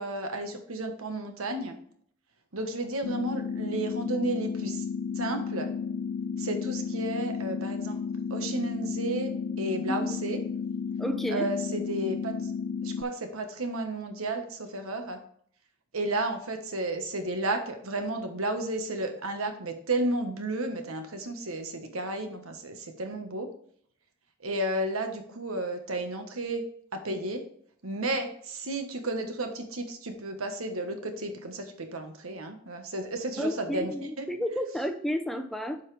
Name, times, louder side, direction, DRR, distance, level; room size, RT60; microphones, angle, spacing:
voice 1, 0.0-1.8 2.5-4.8 5.1-5.7 6.4-10.4 11.3-12.5 12.8-15.2 15.9-23.5 24.4-26.6 26.9-27.4 27.8-34.3, right 2 dB, 85° right, 6 dB, 1.3 m, -32 dB
sound 1, 3.0-13.0, left 6 dB, 65° left, 0.4 m, -33 dB
voice 2, 11.0-11.5 33.4-35.8, equal, ahead, 5 dB, 0.6 m, -31 dB
9.8 x 5.6 x 3.3 m, 0.62 s
head